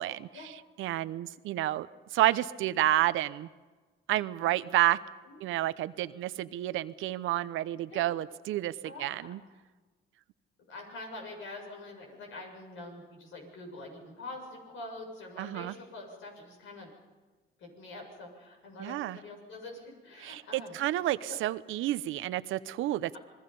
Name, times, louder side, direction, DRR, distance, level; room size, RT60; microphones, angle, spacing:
voice 1, 0.0-3.5 4.1-5.0 5.4-9.4 15.4-15.7 18.8-19.2 20.2-23.2, right 14 dB, 90° right, 15 dB, 0.8 m, -30 dB
voice 2, 8.8-9.3 10.7-16.9 17.6-20.8 21.3-21.4, left 2 dB, 80° left, 1 dB, 7.3 m, -45 dB
28.5 x 21.0 x 5.5 m, 1.3 s
cardioid pair, 90°, 20 cm